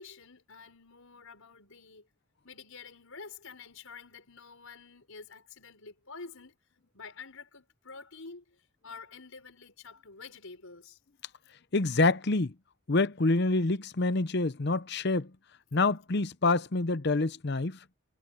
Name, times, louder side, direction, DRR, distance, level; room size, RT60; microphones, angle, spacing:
voice 1, 0.0-2.1 2.4-6.6 6.9-11.0, left 4 dB, 75° left, 4.8 m, -48 dB
voice 2, 11.7-12.5 12.9-15.3 15.7-17.8, left 3 dB, 50° left, 0.7 m, -27 dB
head